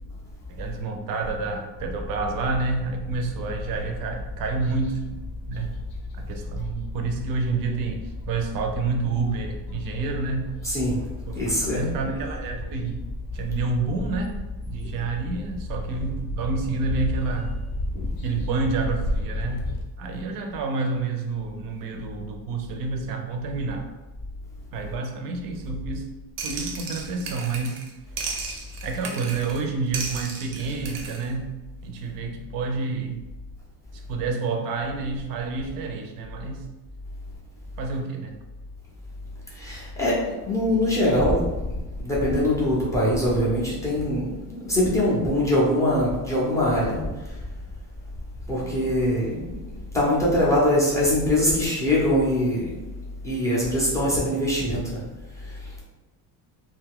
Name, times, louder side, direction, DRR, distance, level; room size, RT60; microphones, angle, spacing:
voice 1, 0.5-5.2 5.5-5.7 6.2-10.6 11.3-13.0 13.3-14.4 14.7-17.5 18.2-19.7 20.0-23.9 24.7-26.0 26.4-27.9 28.8-31.5 31.8-33.2 34.1-36.7 37.8-38.3 48.6-48.7, right 4 dB, 55° right, 3 dB, 0.5 m, -29 dB
sound 1, 1.7-19.8, left 2 dB, 55° left, 0.6 m, -34 dB
voice 2, 10.6-11.0 11.3-11.9 17.9-18.0 39.5-47.1 48.5-49.5 49.9-52.8 53.2-55.0 55.4-55.8, left 1 dB, 10° left, -6 dB, 0.4 m, -23 dB
sound 2, 26.4-27.9 28.2-29.6 29.9-31.3, right 4 dB, 90° right, 0.7 m, -34 dB
2.6 x 2.3 x 3.5 m, 1.1 s
cardioid pair, 180°, 42 cm